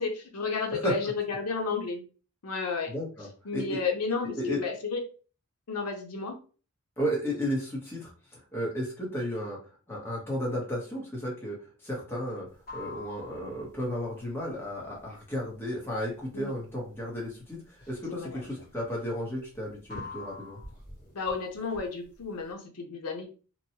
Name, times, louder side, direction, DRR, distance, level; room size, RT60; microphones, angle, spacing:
voice 1, 0.0-2.0 2.4-2.9 3.4-5.0 5.7-6.4 16.3-16.6 18.1-18.4 21.1-23.3, left 4 dB, 85° left, 2 dB, 0.7 m, -32 dB
voice 2, 2.9-3.3 3.5-3.8 4.3-4.6 7.0-8.1 8.5-9.6 9.9-12.5 12.7-20.6, equal, 10° left, -4 dB, 1.0 m, -33 dB
sound 1, 12.5-22.5, left 3 dB, 40° left, 1.6 m, -46 dB
2.9 x 2.2 x 2.8 m, 0.37 s
head